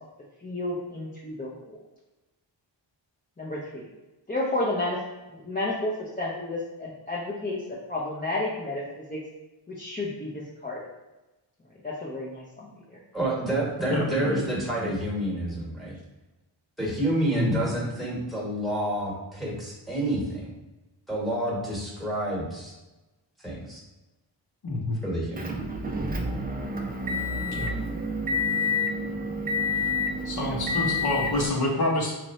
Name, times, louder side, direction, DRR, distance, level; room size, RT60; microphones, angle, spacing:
voice 1, 0.4-1.8 3.4-3.9 4.3-5.0 5.3-7.6 7.9-8.8 9.1-9.2 9.7-10.8 11.8-13.0, left 2 dB, 20° left, -6 dB, 0.6 m, -31 dB
voice 2, 13.1-15.9 16.8-20.5 21.1-22.7 23.4-23.8 25.0-25.6 30.5-30.6, right 1 dB, ahead, -4 dB, 1.2 m, -29 dB
voice 3, 13.9-14.4 14.9-15.0 17.3-17.6 24.6-25.0 27.5-27.7 30.2-32.1, left 2 dB, 55° left, -2 dB, 0.9 m, -27 dB
Motor vehicle (road) / Engine, 25.4-31.5, left 2 dB, 20° right, 0.4 m, -28 dB
3.2 x 2.5 x 4.1 m, 1.1 s
wide cardioid pair, 100°, 46 cm